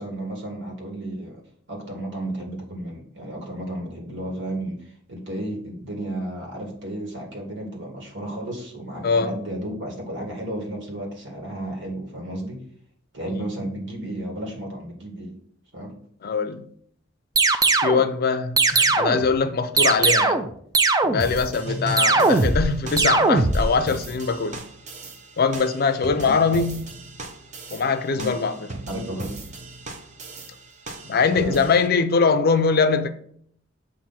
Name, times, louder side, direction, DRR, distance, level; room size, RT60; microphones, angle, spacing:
voice 1, 0.0-12.6 13.1-15.3 15.7-16.0 21.7-22.3 26.2-26.4 28.1-28.3 28.9-29.3 31.3-31.6, right 1 dB, 65° right, 1.8 m, -33 dB
voice 2, 16.2-16.6 17.8-20.4 21.1-24.6 25.4-26.8 27.7-28.7 31.0-33.1, left 5 dB, 50° left, 0.5 m, -22 dB
sound 1, 17.4-18.0 18.6-19.3 19.8-20.5 20.7-21.4 22.0-22.7 23.0-23.6, right 3 dB, 20° right, 0.4 m, -19 dB
sound 2, 21.2-31.9, right 3 dB, 40° right, 0.9 m, -39 dB
7.3 x 2.6 x 5.7 m
head